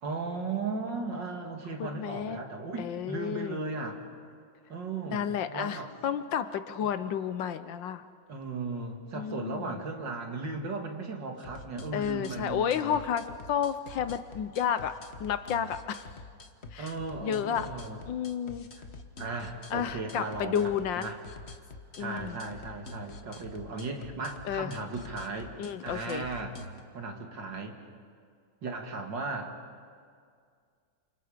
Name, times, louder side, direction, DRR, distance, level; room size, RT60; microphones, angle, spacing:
voice 1, 0.0-4.0 4.7-5.9 6.8-6.9 8.3-13.0 16.8-18.0 18.7-18.9 19.2-21.2 22.0-25.5 25.8-26.6 26.9-27.8 28.6-29.5, right 3 dB, 60° right, 3 dB, 2.8 m, -36 dB
voice 2, 1.8-2.4 2.8-3.6 5.1-8.0 9.1-9.8 11.9-16.1 16.7-16.9 17.2-17.7 18.1-18.7 19.7-21.1 22.0-22.4 24.5-24.7 25.6-26.3, left 8 dB, 70° left, 11 dB, 1.4 m, -31 dB
sound 1, 11.4-26.8, left 3 dB, 35° left, 1.3 m, -46 dB
29.0 x 27.5 x 5.1 m, 2.2 s
omnidirectional pair, 2.2 m